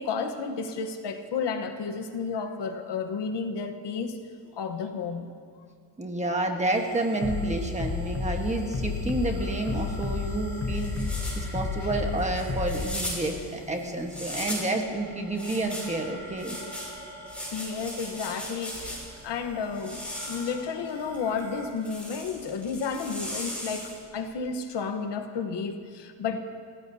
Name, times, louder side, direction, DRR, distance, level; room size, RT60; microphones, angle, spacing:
voice 1, 0.0-4.2 4.5-5.3 11.4-11.5 17.5-19.0 19.2-26.4, left 5 dB, 60° left, 7 dB, 1.1 m, -32 dB
voice 2, 6.0-16.6, right 2 dB, 15° right, 2 dB, 1.2 m, -30 dB
sound 1, 6.7-21.7, right 1 dB, 50° right, 3.8 m, -46 dB
Bass drum, 7.2-12.8, left 4 dB, 25° left, 1.1 m, -31 dB
sound 2, 9.7-14.8 15.3-19.2 19.7-24.1, left 1 dB, 5° left, 5.4 m, -38 dB
30.0 x 16.0 x 2.8 m, 2.1 s
cardioid pair, 170°, 48 cm